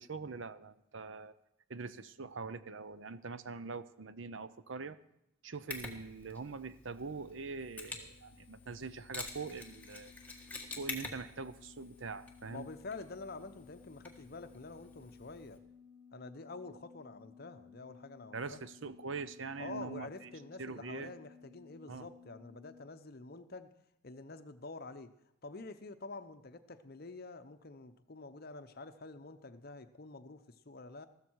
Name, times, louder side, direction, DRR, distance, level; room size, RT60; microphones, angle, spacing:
voice 1, 0.0-1.3 1.7-5.0 5.4-10.1 10.8-12.7 18.3-20.3 20.6-21.1 21.9-22.1, right 4 dB, 60° right, 14 dB, 0.7 m, -43 dB
Mechanisms, 5.7-15.6, left 3 dB, 5° left, 1.5 m, -48 dB
sound 1, 6.6-22.8, left 6 dB, 25° right, 4.6 m, -59 dB
voice 2, 12.5-15.6 16.1-18.6 19.6-23.7 24.0-25.1 25.4-31.1, left 3 dB, 45° left, 11 dB, 0.8 m, -47 dB
14.5 x 13.5 x 4.6 m, 0.82 s
head